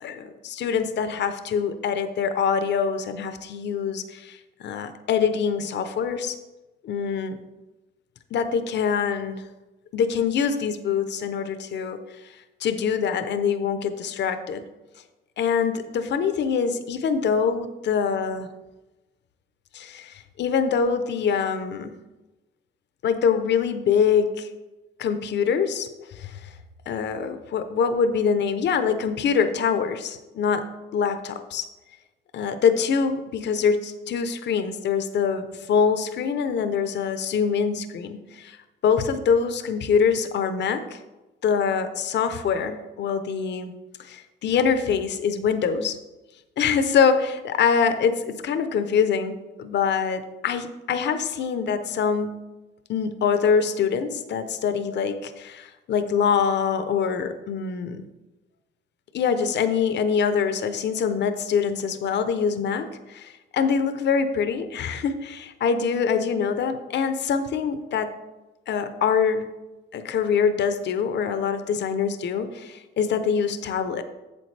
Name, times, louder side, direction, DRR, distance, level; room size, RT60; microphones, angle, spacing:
voice 1, 0.0-6.4 6.8-7.4 8.3-9.4 9.9-12.0 12.6-14.6 15.4-18.5 19.7-22.0 23.0-24.5 25.0-26.5 26.9-31.7 32.3-38.6 38.8-41.0 41.4-43.7 44.0-46.0 46.6-52.4 52.9-58.0 59.1-68.1 68.7-69.5 69.9-74.0, left 6 dB, 60° left, 10 dB, 0.7 m, -24 dB
8.5 x 7.3 x 3.3 m, 1.1 s
cardioid pair, 90°, 20 cm